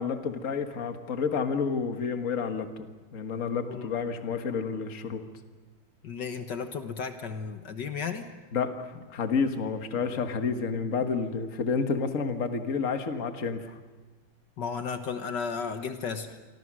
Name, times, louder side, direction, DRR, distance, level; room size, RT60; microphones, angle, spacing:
voice 1, 0.0-2.9 3.1-5.2 8.5-13.7, left 5 dB, 45° left, 6 dB, 1.8 m, -30 dB
voice 2, 6.0-8.3 14.6-16.3, left 6 dB, 65° left, 7 dB, 1.9 m, -34 dB
28.5 x 23.5 x 6.2 m, 1.3 s
omnidirectional pair, 2.1 m